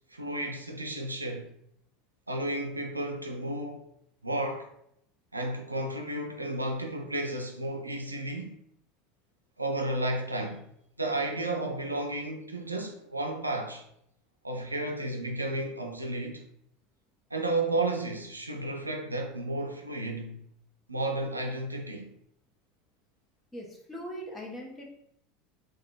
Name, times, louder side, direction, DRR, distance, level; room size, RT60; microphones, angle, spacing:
voice 1, 0.1-1.5 2.3-3.9 4.2-4.7 5.3-8.5 9.6-10.6 11.0-13.8 14.4-16.4 17.3-20.4 20.9-22.1, right 2 dB, 85° right, 0.5 m, -32 dB
voice 2, 23.5-24.8, equal, 15° left, 1.3 m, -40 dB
4.0 x 2.5 x 4.4 m
figure-of-eight pair, 75°, 0 cm